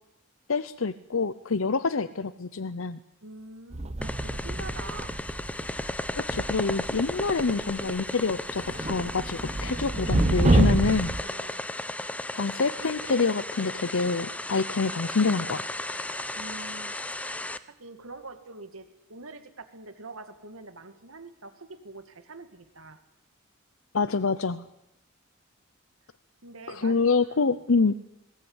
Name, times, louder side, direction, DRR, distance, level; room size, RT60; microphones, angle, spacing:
voice 1, 0.5-3.0 6.2-11.1 12.3-15.6 23.9-24.6 26.7-27.9, left 4 dB, 70° left, 12 dB, 0.8 m, -26 dB
voice 2, 3.2-5.2 11.2-11.6 16.4-16.9 17.6-23.0 26.4-27.5, right 3 dB, 85° right, 8 dB, 2.3 m, -45 dB
sound 1, 3.7-8.0 8.2-11.2, right 1 dB, 30° right, 0.8 m, -27 dB
sound 2, 4.0-17.6, left 1 dB, 5° left, 0.8 m, -35 dB
21.0 x 19.0 x 9.8 m, 0.89 s
head